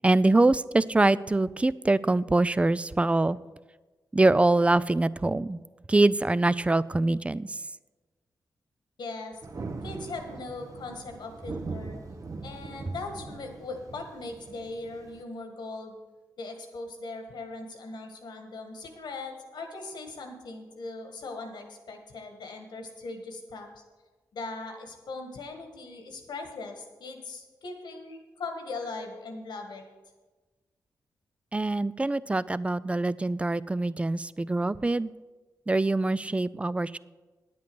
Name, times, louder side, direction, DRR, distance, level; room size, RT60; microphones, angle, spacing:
voice 1, 0.0-3.4 4.1-5.6 5.9-7.6 31.5-35.1 35.7-37.0, right 2 dB, 15° right, 18 dB, 0.4 m, -24 dB
voice 2, 9.0-9.4 9.8-12.0 12.4-16.0 16.4-23.8 24.3-29.8, left 3 dB, 85° left, 4 dB, 1.7 m, -39 dB
Thunder, 9.4-15.2, right 3 dB, 50° right, 1.0 m, -41 dB
9.7 x 8.5 x 6.2 m, 1.3 s
cardioid pair, 65°, 7 cm